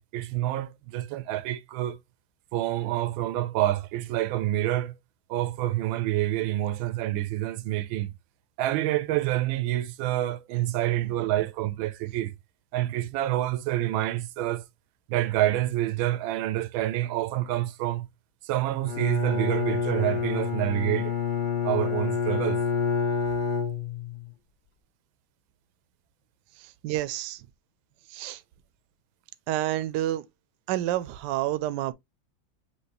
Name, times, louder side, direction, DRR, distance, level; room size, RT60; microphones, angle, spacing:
voice 1, 0.0-2.0 2.5-4.9 5.3-8.1 8.6-12.3 12.7-14.6 15.1-18.1 18.5-21.1 21.6-22.6, right 14 dB, 90° right, 1.4 m, -27 dB
Bowed string instrument, 18.8-24.3, left 6 dB, 45° left, 0.6 m, -28 dB
voice 2, 26.8-27.4 28.1-28.4 29.5-30.2 30.7-31.9, right 14 dB, 75° right, 1.1 m, -28 dB
6.0 x 2.8 x 2.8 m
omnidirectional pair, 2.1 m